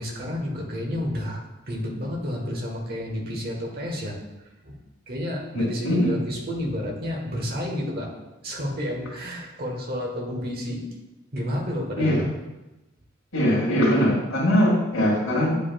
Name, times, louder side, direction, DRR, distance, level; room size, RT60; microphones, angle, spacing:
voice 1, 0.0-4.1 4.6-4.8 5.1-8.1 8.4-10.8 11.3-12.2, equal, 45° right, -1 dB, 1.1 m, -30 dB
voice 2, 5.5-6.2 12.0-12.1 13.3-15.6, equal, 70° left, -7 dB, 1.8 m, -21 dB
9.3 x 5.2 x 2.3 m, 1.0 s
head